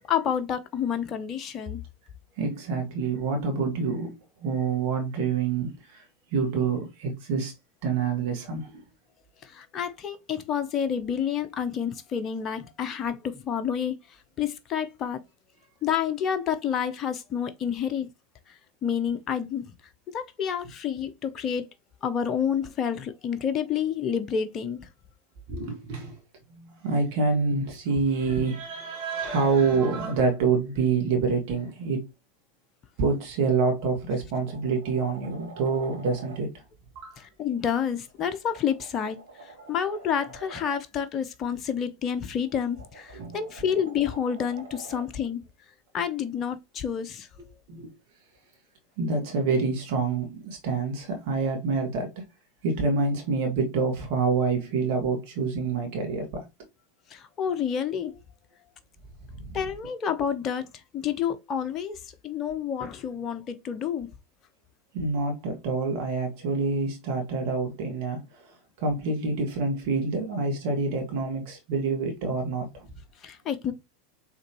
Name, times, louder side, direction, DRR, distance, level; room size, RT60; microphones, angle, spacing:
voice 1, 0.0-1.8 9.4-14.0 14.4-15.2 15.8-18.1 18.5-18.6 18.8-19.7 20.1-21.7 22.0-24.9 37.2-45.4 45.9-47.3 57.1-58.1 59.5-60.7 60.9-64.1 73.2-73.7, left 8 dB, 35° left, 0.7 m, -29 dB
voice 2, 2.4-6.1 6.3-7.5 7.8-8.8 25.5-26.2 26.5-32.0 33.0-36.6 37.0-37.2 43.1-43.4 47.4-47.9 49.0-52.2 52.6-56.5 59.4-59.6 64.9-72.9, right 4 dB, 55° right, 1.9 m, -27 dB
sound 1, 33.5-33.7 34.1-36.4 38.1-40.8 42.3-45.1 47.4-47.5, right 3 dB, 80° right, 1.9 m, -47 dB
4.8 x 3.4 x 3.1 m
figure-of-eight pair, 85°, 0 cm